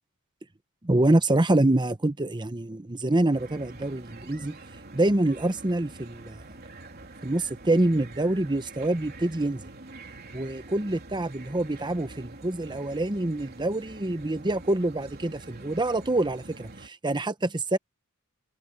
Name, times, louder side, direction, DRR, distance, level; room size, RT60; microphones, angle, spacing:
voice 1, 0.8-4.6 4.9-6.4 7.2-9.6 10.3-17.8, right 1 dB, 20° right, 0.9 m, -26 dB
sound 1, 3.3-16.9, right 2 dB, 45° right, 3.6 m, -46 dB
head